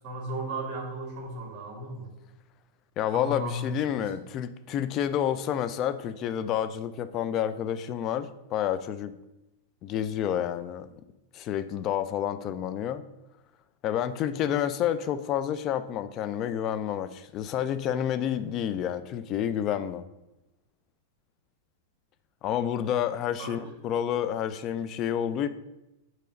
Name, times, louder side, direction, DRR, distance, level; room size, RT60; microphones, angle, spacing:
voice 1, 0.0-2.1 3.1-4.0 23.4-23.7, right 1 dB, 40° right, 0 dB, 2.0 m, -35 dB
voice 2, 3.0-9.1 9.8-10.9 11.3-13.0 13.8-20.1 22.4-25.5, left 10 dB, 35° left, 12 dB, 0.4 m, -29 dB
6.8 x 3.0 x 5.0 m, 0.94 s
hypercardioid pair, 125°, 0 cm